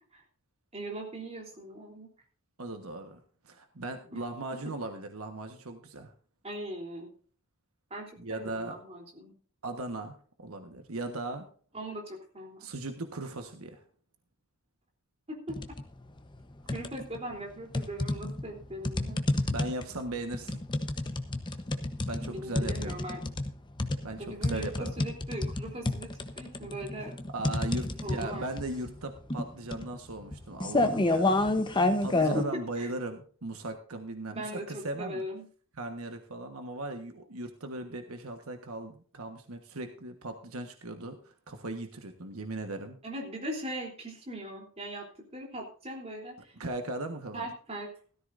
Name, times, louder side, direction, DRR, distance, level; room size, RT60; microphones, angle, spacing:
voice 1, 0.7-2.1 4.1-4.2 6.4-7.1 7.9-9.3 11.7-12.7 15.3-15.6 16.7-19.5 22.3-23.2 24.2-26.1 26.4-27.1 28.0-28.5 32.1-32.9 34.3-35.4 43.0-45.0 45.3-46.5 47.3-47.9, equal, 30° right, 0 dB, 3.4 m, -39 dB
voice 2, 2.6-3.2 3.4-6.1 8.2-8.8 9.6-11.5 12.6-13.8 19.5-20.6 22.1-23.0 24.0-24.9 27.3-35.2 35.7-41.2 41.5-43.0 46.6-47.5, right 2 dB, 75° right, 5 dB, 1.4 m, -38 dB
sound 1, 15.5-15.9 16.3-17.2 17.7-32.4, left 2 dB, 20° left, 0.9 m, -29 dB
16.5 x 13.5 x 2.6 m, 0.44 s
head